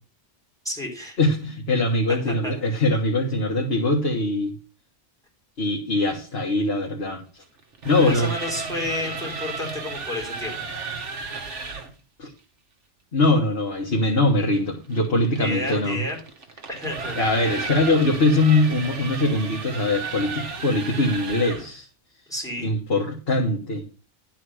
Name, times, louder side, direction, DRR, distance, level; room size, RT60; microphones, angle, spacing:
voice 1, 0.6-1.2 2.3-2.5 8.0-10.5 15.4-16.2 16.7-17.2 22.3-22.7, left 1 dB, 5° left, -1 dB, 3.5 m, -31 dB
voice 2, 1.2-4.5 5.6-7.2 7.8-8.3 12.2-12.3 13.1-16.0 17.2-21.9 22.6-23.8, left 2 dB, 55° left, -1 dB, 1.6 m, -22 dB
sound 1, 7.6-11.9 14.5-21.8, right 4 dB, 80° right, 1.6 m, -34 dB
11.5 x 4.5 x 6.3 m, 0.37 s
omnidirectional pair, 1.2 m